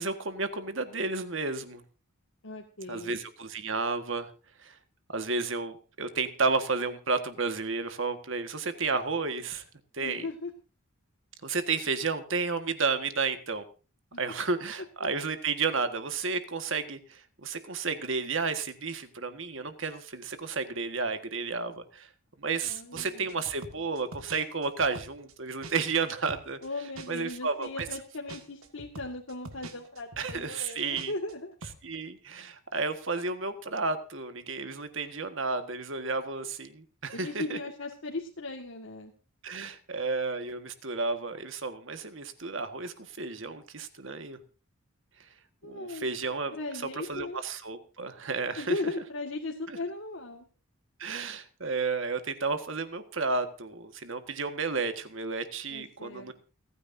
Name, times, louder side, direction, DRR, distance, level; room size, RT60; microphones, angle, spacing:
voice 1, 0.0-1.8 2.9-4.3 4.6-4.8 5.1-9.6 9.9-10.3 11.4-13.6 14.2-22.1 22.4-26.6 27.1-27.9 30.2-31.1 31.8-37.6 39.4-44.4 45.2-45.3 45.6-48.8 49.7-49.8 51.0-56.3, right 4 dB, 60° right, 9 dB, 1.7 m, -32 dB
voice 2, 2.4-3.2 10.0-10.5 22.6-23.3 26.6-31.5 37.1-39.1 45.6-46.1 46.5-47.4 48.6-50.5 55.7-56.3, left 2 dB, 65° left, 0 dB, 2.0 m, -37 dB
sound 1, 22.6-22.7 22.9-26.0 26.3-31.3 31.6-31.8, right 2 dB, 80° right, 2.0 m, -45 dB
29.0 x 9.8 x 2.7 m, 0.35 s
head